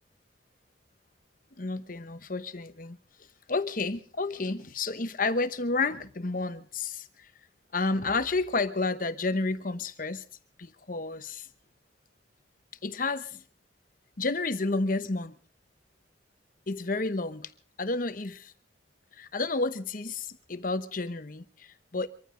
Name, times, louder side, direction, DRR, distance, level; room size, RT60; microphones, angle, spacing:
voice 1, 1.6-3.0 3.5-7.1 7.7-10.2 10.6-11.5 12.8-13.4 14.2-15.3 16.7-17.5 17.8-18.5 19.2-22.1, left 3 dB, 45° left, 1.0 m, -30 dB
24.5 x 14.5 x 3.8 m
head